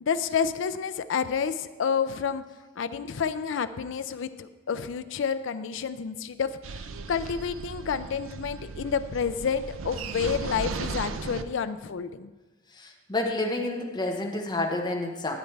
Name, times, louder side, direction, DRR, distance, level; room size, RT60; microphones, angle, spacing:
voice 1, 0.0-2.4 2.8-6.8 7.1-12.3, left 6 dB, 65° left, 11 dB, 0.4 m, -29 dB
sound 1, 6.6-11.4, right 4 dB, 85° right, 0.5 m, -36 dB
voice 2, 12.7-15.3, left 2 dB, 20° left, 1 dB, 1.0 m, -29 dB
12.0 x 8.6 x 3.3 m, 1.2 s
head